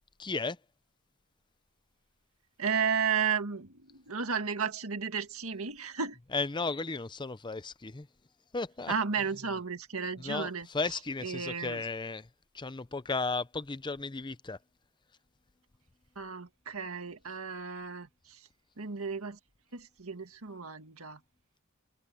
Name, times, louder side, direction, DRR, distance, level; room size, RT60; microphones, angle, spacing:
voice 1, 0.2-0.6 6.3-8.1 8.5-8.9 10.2-12.3 12.5-14.6, left 3 dB, 20° left, 0.6 m, -34 dB
voice 2, 2.6-6.2 8.9-10.7 11.2-11.8 16.2-18.4 18.8-19.4 19.7-21.2, right 6 dB, 70° right, 1.9 m, -33 dB
head